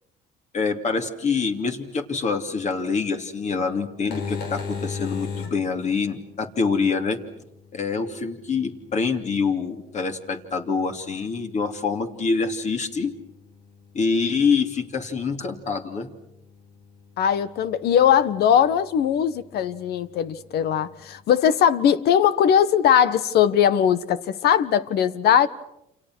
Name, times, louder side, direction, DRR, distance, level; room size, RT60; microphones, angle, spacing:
voice 1, 0.5-7.2 7.7-13.1 13.9-16.1, left 5 dB, 45° left, 3.0 m, -25 dB
sound 1, 3.9-21.2, left 5 dB, 85° left, 4.3 m, -41 dB
voice 2, 17.2-25.5, left 9 dB, 70° left, 1.4 m, -20 dB
29.0 x 28.0 x 6.3 m
cardioid pair, 110°, 17 cm